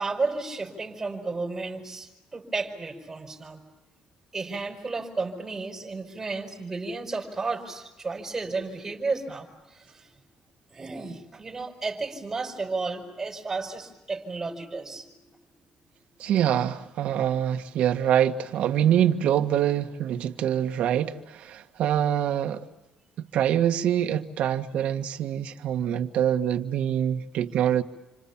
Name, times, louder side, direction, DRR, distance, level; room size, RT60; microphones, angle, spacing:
voice 1, 0.0-3.6 4.3-10.1 10.7-15.2, right 3 dB, 20° right, 5.0 m, -33 dB
voice 2, 16.2-22.7 23.2-27.8, right 10 dB, 70° right, 1.6 m, -25 dB
29.0 x 26.0 x 7.3 m
cardioid pair, 150°, 2 cm